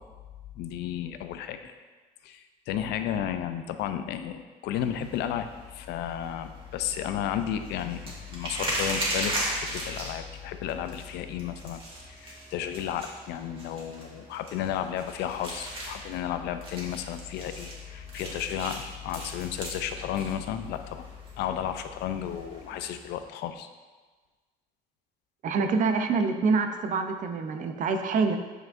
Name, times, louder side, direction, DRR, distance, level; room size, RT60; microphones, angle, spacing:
voice 1, 0.6-1.7 2.2-11.8 12.1-21.1 21.4-23.7, left 10 dB, 80° left, 9 dB, 0.5 m, -33 dB
sound 1, 4.8-23.2, right 1 dB, 35° right, 1.7 m, -38 dB
voice 2, 25.4-28.4, right 4 dB, 50° right, 7 dB, 0.6 m, -26 dB
7.9 x 4.9 x 2.5 m, 1.3 s
cardioid pair, 110°, 17 cm